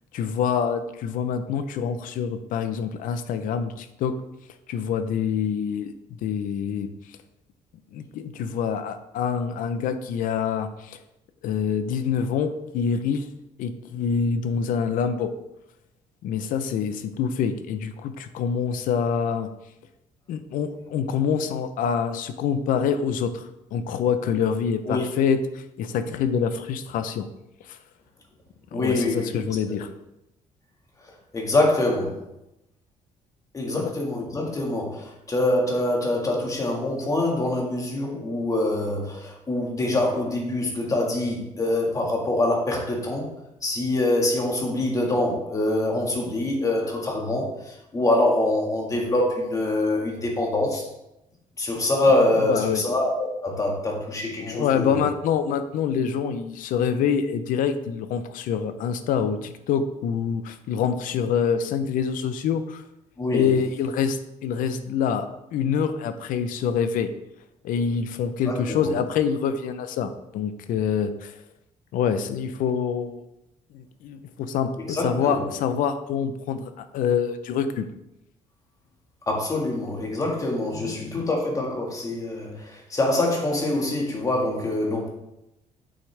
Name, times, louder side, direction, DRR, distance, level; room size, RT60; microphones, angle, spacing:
voice 1, 0.1-4.2 4.7-5.9 6.2-6.9 7.9-11.0 11.4-13.3 13.6-15.3 16.2-19.5 20.3-27.3 27.7-27.8 28.7-29.9 33.7-33.9 52.4-52.8 54.4-62.8 63.3-67.1 67.6-71.3 71.9-73.2 73.7-77.9 80.3-80.4 80.7-81.2, left 7 dB, 80° left, 10 dB, 0.7 m, -26 dB
voice 2, 28.7-29.8 31.3-32.2 33.5-43.3 43.6-50.9 51.6-55.1 63.2-63.5 68.5-68.9 74.8-75.5 79.3-85.1, left 2 dB, 25° left, 0 dB, 1.7 m, -25 dB
8.2 x 6.4 x 3.4 m, 0.89 s
cardioid pair, 140°, 14 cm